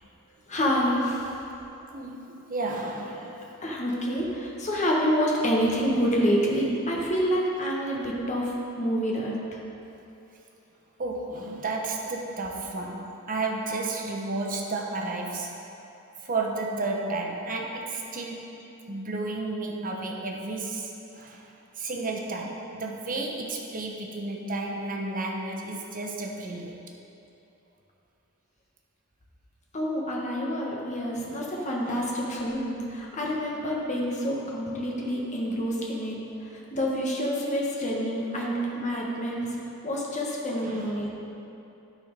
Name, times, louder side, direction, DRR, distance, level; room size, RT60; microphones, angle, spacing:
voice 1, 0.5-1.3 3.6-9.6 29.7-39.5 39.8-41.1, equal, 35° left, -3 dB, 1.3 m, -27 dB
voice 2, 1.9-3.5 11.0-15.6 16.2-18.5 18.9-26.8 31.9-32.1 38.3-38.5 40.6-41.0, right 3 dB, 40° right, 0 dB, 0.9 m, -32 dB
12.0 x 4.4 x 5.2 m, 2.9 s
head